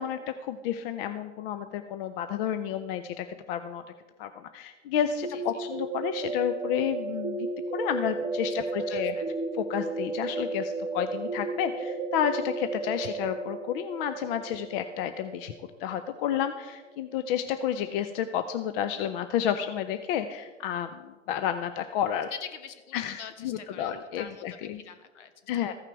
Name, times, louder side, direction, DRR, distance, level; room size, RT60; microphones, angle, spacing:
voice 1, 0.0-3.8 4.2-7.4 7.7-9.1 9.6-15.5 15.8-22.3 22.9-24.8 25.5-25.7, left 9 dB, 50° left, 10 dB, 0.6 m, -31 dB
sound 1, 5.2-16.9, right 3 dB, 15° right, 1.2 m, -34 dB
voice 2, 8.9-9.3 13.0-13.2 22.3-25.7, left 7 dB, 70° left, 10 dB, 1.2 m, -44 dB
14.5 x 5.8 x 4.6 m, 1.3 s
hypercardioid pair, 100°, 37 cm